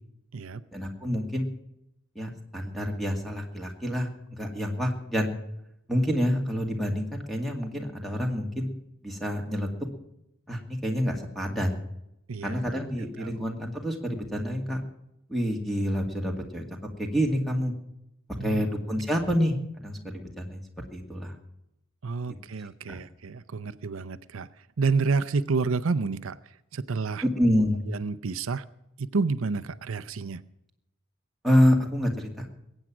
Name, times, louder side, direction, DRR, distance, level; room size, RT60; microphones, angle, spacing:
voice 1, 0.7-1.5 2.2-5.3 5.9-8.7 9.0-9.7 10.5-11.8 12.4-14.8 15.3-16.6 17.0-17.7 18.4-20.6 20.9-21.3 22.9-23.0 27.2-27.8 31.4-32.5, equal, ahead, 2 dB, 2.2 m, -27 dB
voice 2, 22.0-24.5 24.8-26.4 26.7-27.2 27.9-28.7 29.0-30.4, right 4 dB, 85° right, 14 dB, 0.6 m, -29 dB
21.5 x 8.9 x 6.1 m, 0.83 s
head